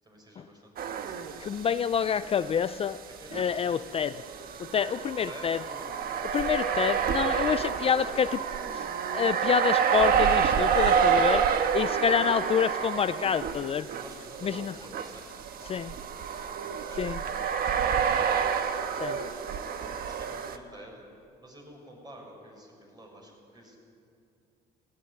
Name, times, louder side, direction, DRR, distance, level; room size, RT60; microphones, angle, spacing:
voice 1, 0.0-1.8 2.2-2.3 3.2-4.3 5.3-6.8 10.8-11.9 13.9-18.5 19.4-21.0 21.4-23.8, right 1 dB, 25° right, 0 dB, 6.9 m, -50 dB
sound 1, 0.8-1.9 2.2-2.3 3.3-20.6, right 7 dB, 60° right, 1.4 m, -28 dB
voice 2, 1.4-3.0 3.3-4.2 4.6-5.6 6.3-8.4 8.7-8.8 9.1-11.4 11.7-13.9 14.4-14.8 15.7-15.9 17.0-17.2 19.0-19.2, left 8 dB, 35° left, 13 dB, 0.4 m, -27 dB
18.0 x 17.5 x 9.7 m, 2.5 s
cardioid pair, 110°, 17 cm